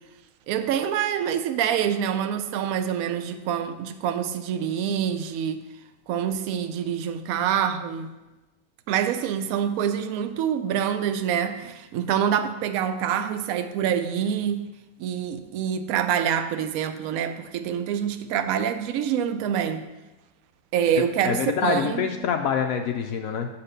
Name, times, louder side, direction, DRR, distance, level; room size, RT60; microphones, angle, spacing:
voice 1, 0.5-5.6 6.1-8.1 8.9-14.6 15.0-19.8 20.7-22.1, right 9 dB, 70° right, 0.8 m, -26 dB
voice 2, 20.9-23.5, left 7 dB, 80° left, 0.7 m, -26 dB
6.7 x 4.3 x 6.6 m
omnidirectional pair, 2.0 m